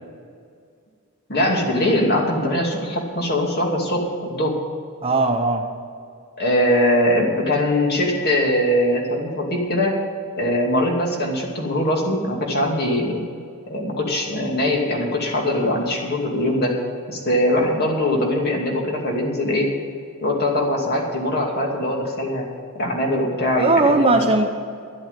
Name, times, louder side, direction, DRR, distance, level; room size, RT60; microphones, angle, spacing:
voice 1, 1.3-4.6 6.4-10.0 10.4-13.2 13.7-16.8 17.1-19.7 20.2-22.5 22.7-24.2, left 1 dB, 50° left, 0 dB, 2.6 m, -21 dB
voice 2, 5.0-5.7 23.6-24.5, right 3 dB, 25° right, 4 dB, 1.1 m, -18 dB
12.0 x 7.9 x 9.0 m, 2.3 s
head